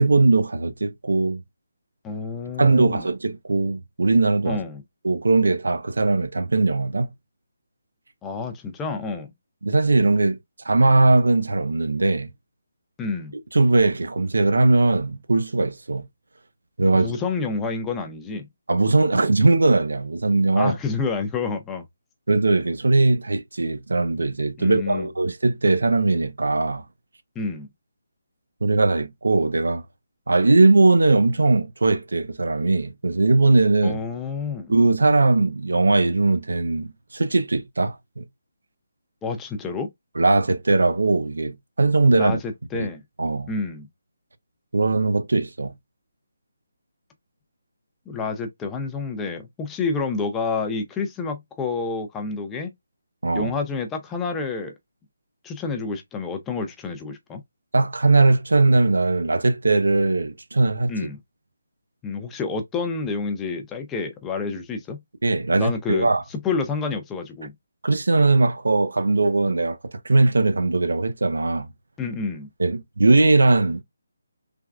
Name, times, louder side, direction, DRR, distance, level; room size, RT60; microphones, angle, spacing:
voice 1, 0.0-1.4 2.6-4.6 5.0-7.1 9.6-10.4 10.6-12.3 13.5-16.0 16.8-17.1 18.7-20.8 22.3-26.8 28.6-29.8 30.3-34.0 34.7-38.2 40.2-42.4 42.7-42.9 43.2-43.5 44.7-45.7 53.2-53.5 57.7-60.9 65.2-66.2 67.8-71.7 72.6-73.8, right 3 dB, 80° right, 0.6 m, -20 dB
voice 2, 2.0-3.1 4.5-4.8 8.2-9.3 13.0-13.3 16.9-18.5 20.6-21.8 24.6-25.1 27.4-27.7 33.8-34.7 39.2-39.9 42.1-43.0 43.5-43.9 48.1-52.7 53.3-54.7 55.4-57.4 60.9-61.2 62.0-65.0 65.6-67.5 72.0-72.5, left 4 dB, 10° left, 0.4 m, -29 dB
3.4 x 2.2 x 2.3 m
figure-of-eight pair, 160°, 0 cm